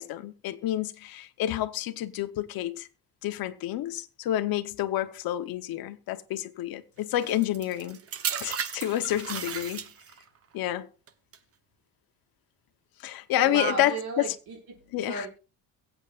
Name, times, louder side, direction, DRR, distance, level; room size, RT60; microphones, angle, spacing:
voice 1, 0.0-2.9 3.2-8.0 8.4-9.9 10.5-10.9 13.0-14.3 14.9-15.3, left 13 dB, 70° left, 1.0 m, -29 dB
sound 1, 7.2-10.3 11.1-11.4, right 7 dB, 40° right, 1.0 m, -35 dB
voice 2, 13.4-14.8 15.0-15.3, right 5 dB, 90° right, 5.7 m, -34 dB
22.5 x 8.2 x 2.5 m
cardioid pair, 135°, 37 cm